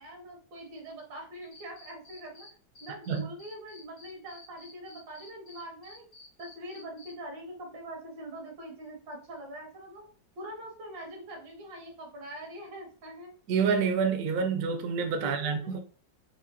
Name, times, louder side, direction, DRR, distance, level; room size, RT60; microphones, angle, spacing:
voice 1, 0.0-2.5 2.8-6.0 6.4-10.0 10.4-13.4 15.2-15.8, right 1 dB, 85° right, 1.8 m, -43 dB
Cricket, 1.5-2.5 2.7-7.1, left 3 dB, 85° left, 2.0 m, -52 dB
voice 2, 13.5-15.8, right 6 dB, 70° right, 1.0 m, -27 dB
4.9 x 2.3 x 2.6 m
omnidirectional pair, 1.9 m